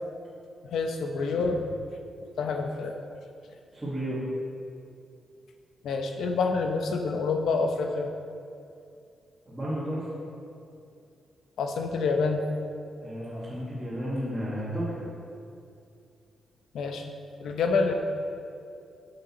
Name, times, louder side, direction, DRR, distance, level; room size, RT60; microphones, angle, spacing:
voice 1, 0.6-1.8 2.4-2.9 5.8-8.1 11.6-12.4 16.7-17.0 17.4-17.9, left 4 dB, 75° left, 4 dB, 0.7 m, -27 dB
voice 2, 3.7-4.2 9.4-10.1 13.0-15.0, equal, 10° right, -11 dB, 1.7 m, -32 dB
8.3 x 6.6 x 4.2 m, 2.5 s
wide cardioid pair, 170°, 0 cm